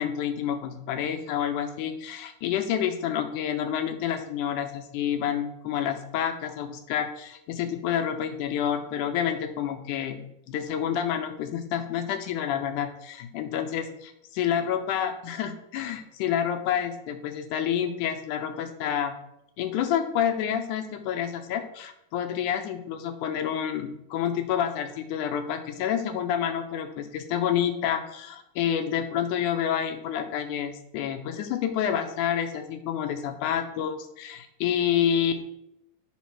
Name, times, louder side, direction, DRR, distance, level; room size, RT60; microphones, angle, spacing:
voice 1, 0.0-13.9 14.3-19.1 19.6-35.5, left 9 dB, 80° left, 7 dB, 2.0 m, -28 dB
8.4 x 3.7 x 6.0 m, 0.78 s
omnidirectional pair, 3.8 m